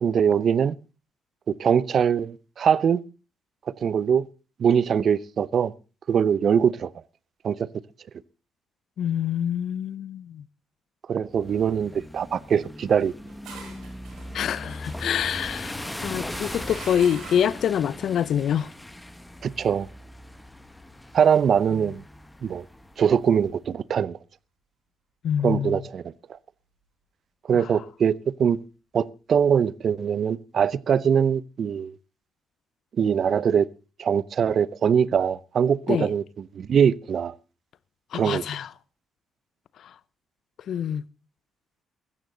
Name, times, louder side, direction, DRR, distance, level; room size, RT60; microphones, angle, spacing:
voice 1, 0.0-0.8 1.5-3.0 3.8-4.3 4.6-5.7 6.1-6.9 7.4-7.7 11.1-13.1 14.4-14.5 19.4-19.9 21.1-22.0 22.4-22.6 23.0-24.2 25.4-26.1 27.5-28.6 28.9-31.9 33.0-33.7 34.0-36.2 36.5-37.3 38.1-38.4, right 7 dB, 55° right, 0.7 m, -22 dB
voice 2, 9.0-10.4 14.3-18.7 25.2-25.8 27.5-27.7 35.9-36.1 38.1-38.7 39.8-39.9 40.7-41.0, left 9 dB, 70° left, 0.7 m, -26 dB
sound 1, 11.3-23.5, left 1 dB, 10° left, 1.6 m, -39 dB
sound 2, 13.0-17.7, right 5 dB, 80° right, 7.4 m, -45 dB
15.5 x 14.0 x 3.9 m
cardioid pair, 90°, 0 cm